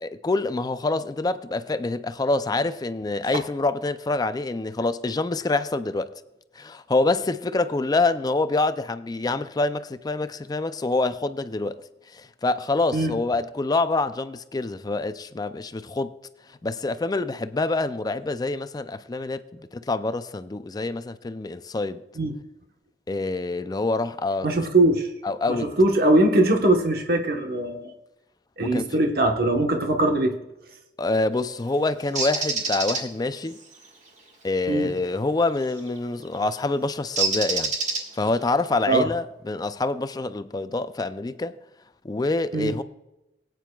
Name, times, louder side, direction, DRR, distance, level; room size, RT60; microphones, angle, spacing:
voice 1, 0.0-6.1 6.6-11.8 12.1-16.1 16.6-22.0 23.1-24.6 25.2-25.7 28.6-29.0 31.0-33.6 34.4-37.7 38.2-41.6 42.0-42.8, left 3 dB, 20° left, 0.4 m, -26 dB
voice 2, 24.4-25.1 25.5-27.9 28.6-30.3 34.7-34.9 38.9-39.1 42.5-42.7, right 1 dB, 60° right, 1.2 m, -21 dB
Bird, 32.2-33.0 35.6-35.9 37.2-38.4, right 4 dB, 45° right, 1.6 m, -26 dB
19.0 x 9.2 x 2.3 m
head